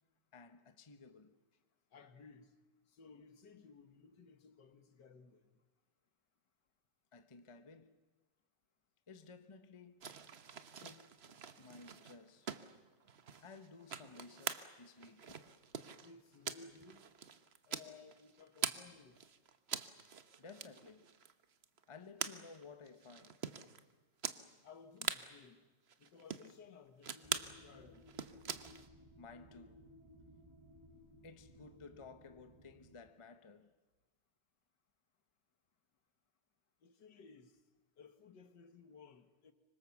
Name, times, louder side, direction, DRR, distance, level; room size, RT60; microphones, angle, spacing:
voice 1, 0.3-1.4 7.1-8.0 9.1-10.0 10.8-12.5 13.4-15.5 20.4-21.2 21.9-23.4 29.2-29.9 31.2-33.7, left 4 dB, 25° left, 0.8 m, -56 dB
voice 2, 1.9-2.5 2.9-5.4 16.0-17.1 17.7-19.2 24.6-25.6 26.0-28.1 36.8-37.6 38.0-39.5, left 5 dB, 70° left, 2.1 m, -58 dB
sound 1, 10.0-18.8 19.1-23.8 24.2-24.4 24.7-24.8 25.0-25.2 25.9-26.5 27.0-27.5 27.9-28.9, right 6 dB, 45° right, 1.0 m, -44 dB
sound 2, 27.2-33.1, equal, 20° right, 1.0 m, -60 dB
25.5 x 24.5 x 7.2 m
omnidirectional pair, 2.0 m